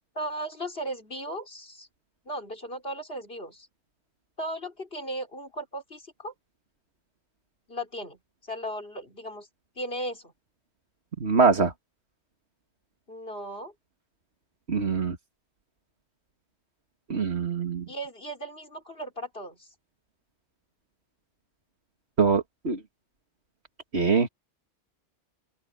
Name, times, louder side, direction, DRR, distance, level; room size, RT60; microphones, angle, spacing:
voice 1, 0.1-1.9 2.2-3.7 4.4-6.3 7.7-9.5 9.8-10.3 13.1-13.7 17.9-19.7, equal, 55° left, 4.9 m, -36 dB
voice 2, 11.2-11.7 14.7-15.2 17.1-17.9 22.2-22.8 23.9-24.3, right 5 dB, 65° right, 2.3 m, -23 dB
open air
omnidirectional pair, 1.2 m